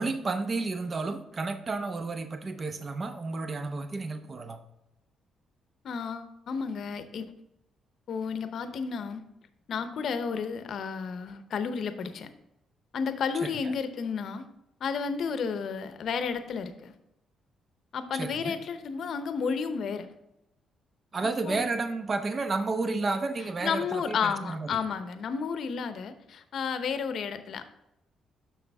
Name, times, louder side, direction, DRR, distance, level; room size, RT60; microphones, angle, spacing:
voice 1, 0.0-4.6 13.6-13.7 18.1-18.5 21.1-24.8, right 3 dB, 35° right, 8 dB, 0.7 m, -31 dB
voice 2, 5.8-7.2 8.1-9.2 9.7-12.3 12.9-14.4 14.8-16.9 17.9-20.1 21.5-21.6 23.6-27.6, left 6 dB, 65° left, 10 dB, 0.7 m, -32 dB
6.8 x 6.3 x 3.4 m, 0.87 s
cardioid pair, 90°, 0 cm